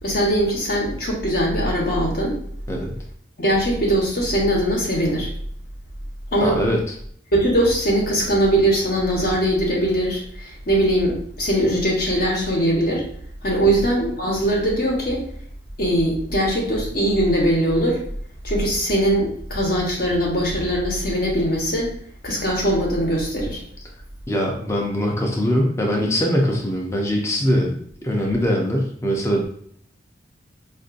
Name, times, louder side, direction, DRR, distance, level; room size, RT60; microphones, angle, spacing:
voice 1, 0.0-2.4 3.4-5.3 6.3-6.6 7.3-13.0 13.4-15.2 15.8-18.0 18.4-21.9 22.2-23.6, right 1 dB, 50° left, -2 dB, 1.0 m, -21 dB
voice 2, 6.4-6.8 13.7-13.8 24.3-29.4, equal, 15° left, 0 dB, 0.5 m, -22 dB
4.5 x 2.5 x 2.5 m, 0.62 s
head